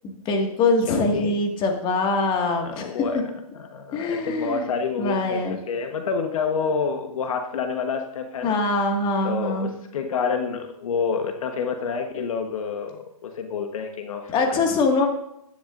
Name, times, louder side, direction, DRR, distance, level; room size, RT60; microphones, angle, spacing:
voice 1, 0.3-2.9 3.9-4.7 5.0-5.6 8.4-9.7 14.3-15.1, left 3 dB, 25° left, 2 dB, 2.0 m, -23 dB
voice 2, 0.9-1.4 2.6-3.3 3.5-8.6 9.2-14.6, left 5 dB, 65° left, 5 dB, 1.2 m, -28 dB
15.0 x 10.5 x 2.6 m, 0.79 s
hypercardioid pair, 135°, 19 cm